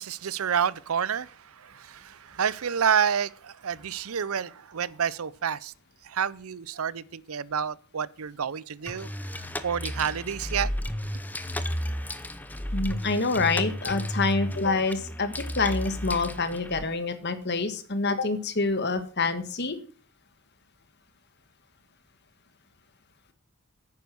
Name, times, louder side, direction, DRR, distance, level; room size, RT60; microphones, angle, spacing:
voice 1, 0.0-5.7 6.0-10.7, right 7 dB, 75° right, 0.6 m, -29 dB
sound 1, 8.9-16.9, equal, 10° left, 0.7 m, -33 dB
voice 2, 12.7-19.8, left 3 dB, 50° left, 1.6 m, -27 dB
10.5 x 9.2 x 6.2 m
head